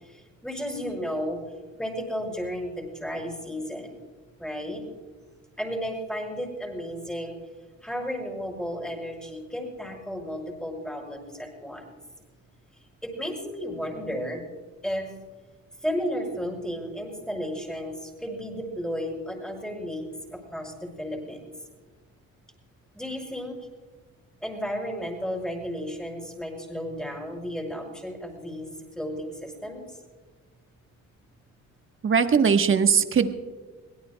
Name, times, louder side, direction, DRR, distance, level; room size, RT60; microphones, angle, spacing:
voice 1, 0.0-1.4 1.8-4.0 4.4-4.8 5.6-7.4 7.8-12.0 13.0-14.4 14.8-15.1 15.8-21.5 22.9-23.6 24.4-30.0, equal, 5° left, 1 dB, 5.6 m, -33 dB
voice 2, 32.0-33.3, right 6 dB, 45° right, 7 dB, 1.2 m, -20 dB
23.5 x 17.5 x 2.3 m, 1.4 s
cardioid pair, 90°, 30 cm